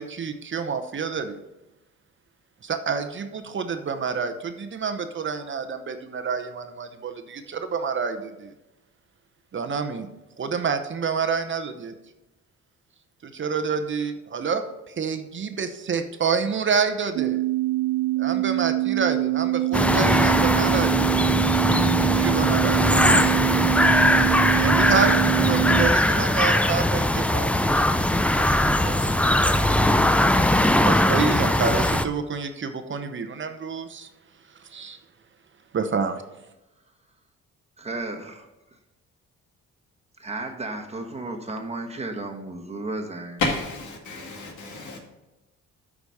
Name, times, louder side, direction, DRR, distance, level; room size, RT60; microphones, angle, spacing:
voice 1, 0.0-1.4 2.6-8.5 9.5-10.1 10.4-11.9 13.2-14.6 14.9-17.4 18.2-21.1 21.9-23.2 24.6-29.1 30.8-34.1 34.7-35.0 35.7-36.2, right 5 dB, 40° right, 8 dB, 0.8 m, -28 dB
sound 1, 17.2-25.9, right 19 dB, 80° right, 0.5 m, -24 dB
sound 2, 19.7-32.0, left 1 dB, 5° left, 0.4 m, -20 dB
voice 2, 37.8-38.5 40.2-43.4, right 2 dB, 20° right, 3 dB, 1.2 m, -33 dB
voice 3, 43.4-45.0, left 3 dB, 75° left, 3 dB, 1.9 m, -30 dB
8.3 x 5.0 x 5.4 m, 1.0 s
cardioid pair, 90°, 30 cm